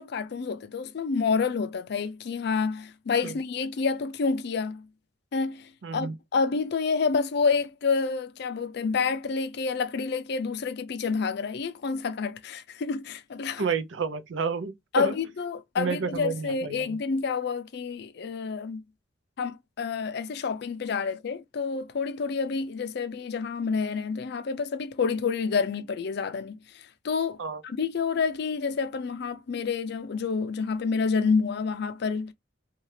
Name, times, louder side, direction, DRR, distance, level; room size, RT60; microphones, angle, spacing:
voice 1, 0.0-4.9 5.3-13.6 14.9-18.8 19.4-26.6 27.0-32.3, left 5 dB, 60° left, 0.4 m, -28 dB
voice 2, 5.8-6.2 13.6-15.1 15.8-17.0 27.4-27.6, right 5 dB, 80° right, 0.5 m, -30 dB
2.7 x 2.3 x 3.1 m
head